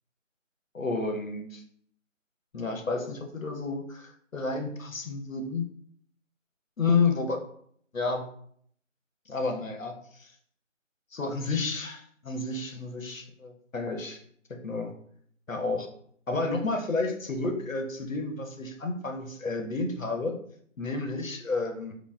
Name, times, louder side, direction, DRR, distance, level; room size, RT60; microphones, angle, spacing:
voice 1, 0.7-1.6 2.5-5.6 6.8-7.4 7.9-8.3 9.3-10.3 11.1-14.2 14.5-14.9 15.5-15.9 16.3-20.4 20.8-21.9, left 3 dB, 85° left, 4 dB, 0.8 m, -31 dB
5.7 x 2.1 x 2.3 m, 0.65 s
figure-of-eight pair, 165°, 39 cm